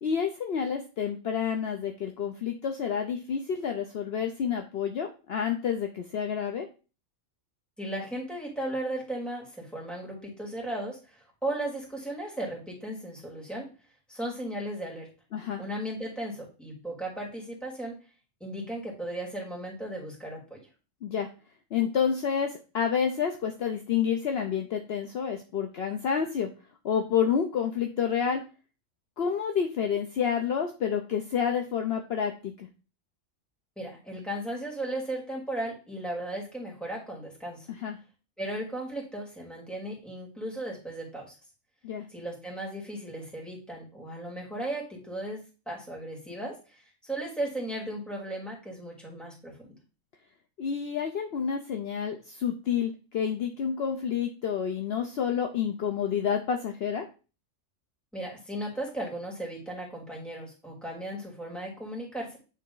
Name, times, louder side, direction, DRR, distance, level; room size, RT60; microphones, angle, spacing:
voice 1, 0.0-6.7 15.3-15.6 21.0-21.3 21.7-26.5 26.8-28.4 29.2-32.7 37.7-38.0 41.8-42.1 50.6-57.1, left 7 dB, 60° left, 4 dB, 0.9 m, -29 dB
voice 2, 7.8-13.7 14.1-15.1 15.6-18.0 18.4-20.6 33.8-37.7 38.4-41.3 42.1-45.4 45.7-49.7 58.1-62.4, right 1 dB, ahead, -3 dB, 2.4 m, -36 dB
9.2 x 3.5 x 3.9 m, 0.34 s
omnidirectional pair, 1.3 m